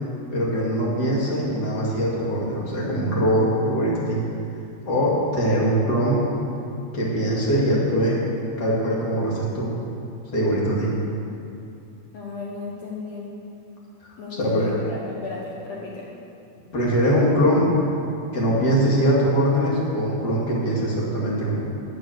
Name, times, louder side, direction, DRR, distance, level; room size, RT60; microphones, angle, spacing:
voice 1, 0.3-4.2 4.9-6.3 6.9-8.2 8.6-9.7 10.3-10.9 14.4-14.8 16.7-17.7 18.3-21.6, equal, 35° left, -5 dB, 2.0 m, -22 dB
voice 2, 12.1-13.3 14.2-16.1, left 3 dB, 80° left, -3 dB, 1.5 m, -35 dB
12.0 x 8.2 x 6.5 m, 2.6 s
omnidirectional pair, 4.8 m